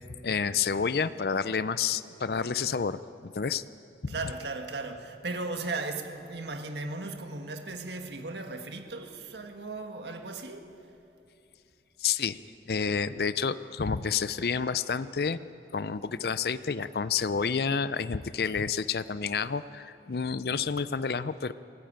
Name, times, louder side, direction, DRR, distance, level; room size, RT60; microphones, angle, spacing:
voice 1, 0.2-3.6 4.0-4.1 12.0-12.4 12.7-15.4 15.7-21.5, left 6 dB, 60° left, 0.5 m, -29 dB
voice 2, 4.1-10.7, right 3 dB, 80° right, 1.6 m, -36 dB
27.0 x 15.5 x 8.8 m
head